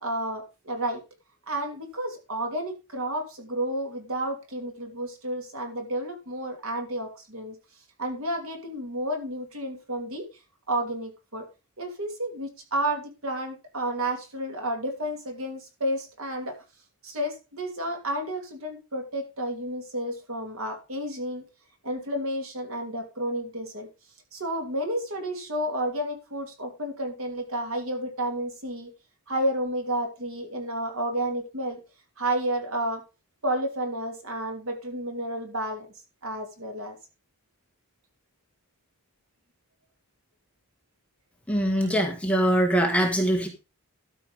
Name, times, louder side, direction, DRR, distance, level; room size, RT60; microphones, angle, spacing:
voice 1, 0.0-1.0 1.5-7.6 8.0-10.2 10.7-11.4 11.8-16.6 17.0-21.4 21.8-23.9 24.3-28.9 29.3-31.8 32.2-33.0 33.4-35.9 36.2-37.0 41.8-41.9, right 1 dB, 70° right, 4 dB, 2.8 m, -31 dB
voice 2, 41.5-43.5, equal, 5° left, 2 dB, 1.6 m, -23 dB
12.5 x 5.8 x 5.1 m, 0.30 s
head